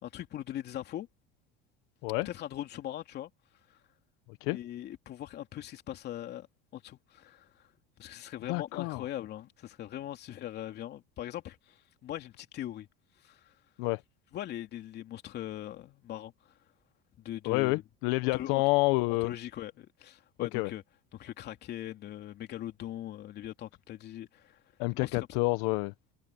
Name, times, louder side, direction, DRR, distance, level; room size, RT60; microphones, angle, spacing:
voice 1, 0.0-1.1 2.2-3.3 3.7-3.8 4.5-6.5 6.7-7.7 8.0-12.9 13.2-13.5 14.3-16.5 17.2-17.8 18.3-18.6 19.2-20.8 21.1-24.6 24.9-25.3, left 12 dB, 50° left, 3.1 m, -41 dB
voice 2, 8.5-9.0 13.8-14.0 17.5-19.3 20.5-20.7 24.8-25.9, left 24 dB, 70° left, 1.1 m, -28 dB
supercardioid pair, 90°, 21 cm